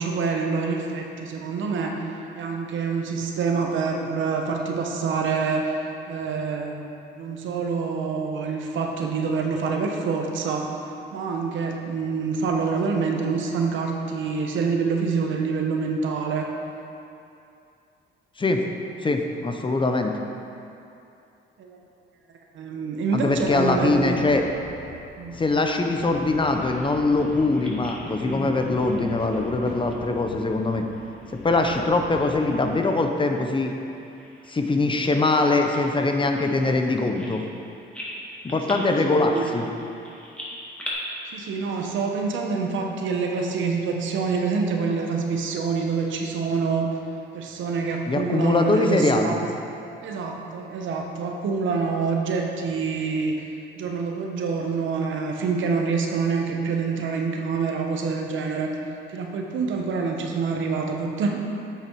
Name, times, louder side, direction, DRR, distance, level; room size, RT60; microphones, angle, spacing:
voice 1, 0.0-2.0 2.3-10.7 11.1-16.5 21.6-21.8 22.5-24.2 25.2-25.4 38.7-39.5 41.3-47.0 47.3-49.4 50.0-53.5 53.8-58.7 59.1-61.4, right 5 dB, 75° right, 2 dB, 1.0 m, -26 dB
voice 2, 19.0-20.1 23.1-24.4 25.4-30.9 31.4-33.7 34.5-37.4 38.4-39.7 48.1-49.4, left 3 dB, 25° left, 4 dB, 0.7 m, -22 dB
sound 1, 23.3-32.7, left 3 dB, 50° left, 0.9 m, -43 dB
Bird vocalization bird call bird song, 25.9-31.9 32.2-33.1 33.4-33.6 34.2-37.6 37.9-40.9, equal, 5° left, 1.9 m, -40 dB
8.2 x 6.2 x 4.6 m, 2.7 s
cardioid pair, 90°, 20 cm